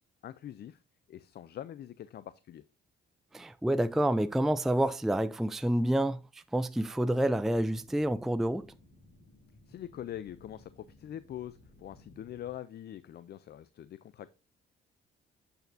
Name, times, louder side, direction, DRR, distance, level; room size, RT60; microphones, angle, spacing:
voice 1, 0.2-0.8 1.1-2.6 9.7-14.3, left 11 dB, 55° left, 0.5 m, -43 dB
voice 2, 3.3-8.7, right 1 dB, ahead, 0.4 m, -28 dB
sound 1, 7.4-12.5, left 1 dB, 35° left, 3.2 m, -59 dB
8.0 x 6.8 x 2.6 m
cardioid pair, 90°, 20 cm